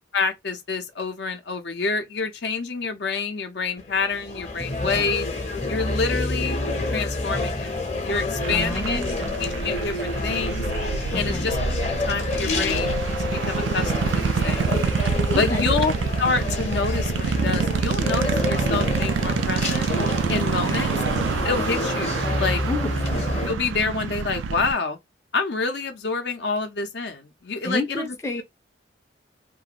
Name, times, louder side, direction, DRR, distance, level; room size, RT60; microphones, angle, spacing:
voice 1, 0.1-5.3 5.7-6.6 6.9-7.7 8.0-9.0 9.6-10.7 11.1-11.6 12.1-14.7 15.4-15.9 16.2-19.9 20.3-20.9 21.4-22.6 23.5-25.0 25.3-28.1, left 4 dB, 60° left, 0.6 m, -27 dB
sound 1, 3.8-23.5, left 2 dB, 35° left, 0.8 m, -28 dB
voice 2, 4.8-5.1 8.5-9.2 11.1-11.5 15.3-15.7 20.6-21.0 22.7-22.9 27.6-28.4, left 2 dB, 15° left, 0.5 m, -30 dB
sound 2, 8.4-24.7, right 5 dB, 80° right, 0.3 m, -27 dB
2.5 x 2.4 x 2.9 m
head